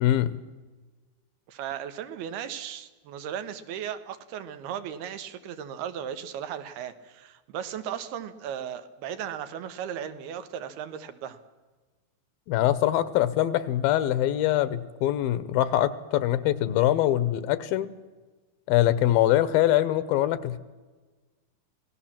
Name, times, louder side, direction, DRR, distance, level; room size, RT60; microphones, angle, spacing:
voice 1, 0.0-0.4 12.5-17.9 18.7-20.6, left 13 dB, 75° left, 16 dB, 2.6 m, -23 dB
voice 2, 1.5-11.4, right 9 dB, 85° right, 10 dB, 3.2 m, -36 dB
26.0 x 18.0 x 7.4 m, 1.3 s
omnidirectional pair, 4.4 m